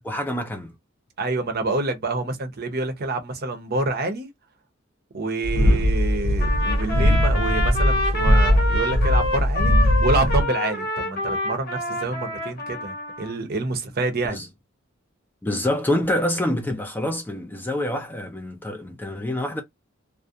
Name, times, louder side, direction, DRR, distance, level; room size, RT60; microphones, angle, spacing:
voice 1, 0.0-0.7 5.5-5.9 14.3-14.5 15.4-19.6, left 1 dB, 10° left, 0.4 m, -26 dB
voice 2, 1.2-4.3 5.1-14.4, right 2 dB, 50° right, 0.6 m, -27 dB
sound 1, 5.4-10.4, equal, 80° right, 0.7 m, -20 dB
Trumpet, 6.4-13.3, left 1 dB, 50° left, 0.8 m, -27 dB
2.3 x 2.1 x 2.6 m
head